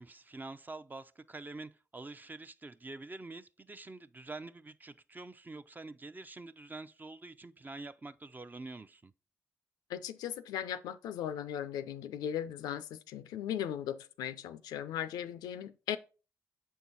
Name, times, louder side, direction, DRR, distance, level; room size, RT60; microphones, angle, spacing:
voice 1, 0.0-9.1, right 3 dB, 25° right, 0.5 m, -46 dB
voice 2, 9.9-16.0, left 10 dB, 80° left, 0.4 m, -38 dB
7.2 x 4.5 x 4.1 m
hypercardioid pair, 40°, 7 cm